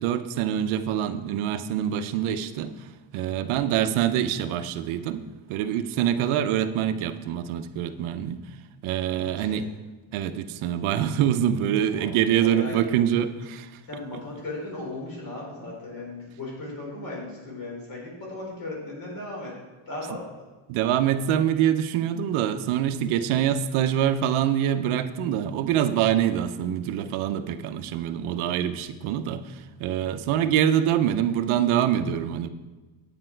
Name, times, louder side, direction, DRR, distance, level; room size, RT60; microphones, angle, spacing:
voice 1, 0.0-2.9 3.1-5.2 5.5-8.4 8.8-9.7 10.1-13.8 20.7-32.5, right 10 dB, 85° right, 10 dB, 0.8 m, -25 dB
voice 2, 9.2-9.6 11.9-12.0 12.4-12.9 13.9-19.5 19.9-20.2 30.2-30.4, left 2 dB, 45° left, -3 dB, 4.0 m, -37 dB
9.9 x 9.0 x 4.5 m, 1.2 s
cardioid pair, 175°, 48 cm